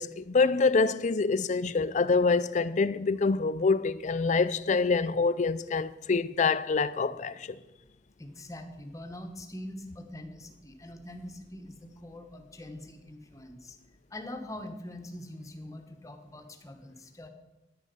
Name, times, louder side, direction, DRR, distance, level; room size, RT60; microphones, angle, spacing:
voice 1, 0.0-7.6, left 4 dB, 45° left, 0.4 m, -26 dB
voice 2, 8.2-13.8 14.1-17.3, left 1 dB, 20° left, 1.2 m, -43 dB
9.9 x 9.8 x 6.8 m
head